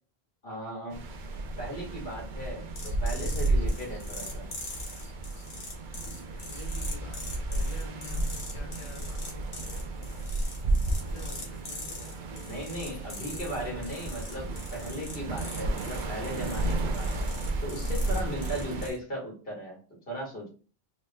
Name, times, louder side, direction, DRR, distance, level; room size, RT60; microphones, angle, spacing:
voice 1, 0.4-1.0 1.6-4.5 12.4-17.1 17.6-19.8 20.1-20.5, equal, 65° left, 1.7 m, -37 dB
sound 1, 0.9-18.9, right 2 dB, 60° right, 0.6 m, -33 dB
sound 2, 2.7-19.0, left 2 dB, 85° left, 1.4 m, -43 dB
voice 2, 6.3-10.3 11.0-13.9, left 2 dB, 40° left, 0.5 m, -49 dB
4.1 x 2.0 x 3.2 m
omnidirectional pair, 1.0 m